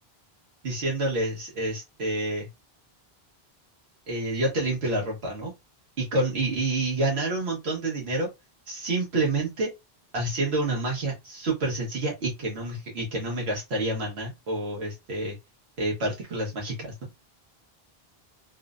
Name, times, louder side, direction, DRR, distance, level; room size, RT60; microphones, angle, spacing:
voice 1, 0.6-2.5 4.1-5.5 6.0-8.3 8.7-9.7 10.1-15.4 15.8-16.9, right 2 dB, 80° right, 1.2 m, -28 dB
3.0 x 2.0 x 2.3 m
omnidirectional pair, 1.0 m